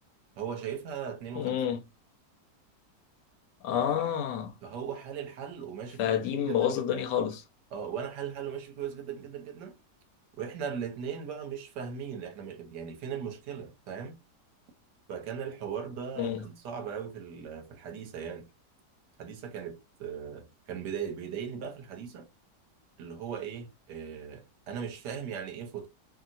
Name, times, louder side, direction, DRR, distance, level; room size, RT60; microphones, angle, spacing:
voice 1, 0.4-1.6 4.6-6.2 6.5-7.1 7.7-9.8 10.4-14.2 15.1-18.5 19.2-22.3 23.0-25.9, right 7 dB, 75° right, 1.4 m, -38 dB
voice 2, 1.4-1.8 3.6-4.5 6.0-7.4 16.2-16.4, left 9 dB, 85° left, 1.2 m, -29 dB
2.9 x 2.8 x 2.5 m
omnidirectional pair, 1.8 m